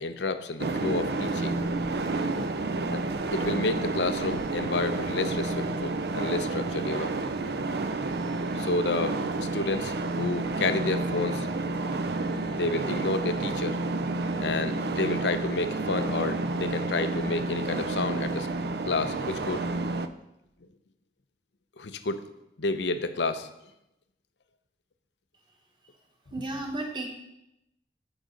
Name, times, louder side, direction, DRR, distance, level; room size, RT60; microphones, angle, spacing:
voice 1, 0.0-1.6 2.9-3.0 3.3-7.1 8.5-11.5 12.5-13.8 14.4-18.5 18.9-19.7 21.8-22.2 22.6-23.5, left 3 dB, 85° left, 10 dB, 0.7 m, -30 dB
sound 1, 0.6-20.1, right 3 dB, 60° right, 0.5 m, -30 dB
voice 2, 26.3-27.1, right 2 dB, 25° right, 1 dB, 1.5 m, -33 dB
15.0 x 5.0 x 3.9 m, 0.86 s
head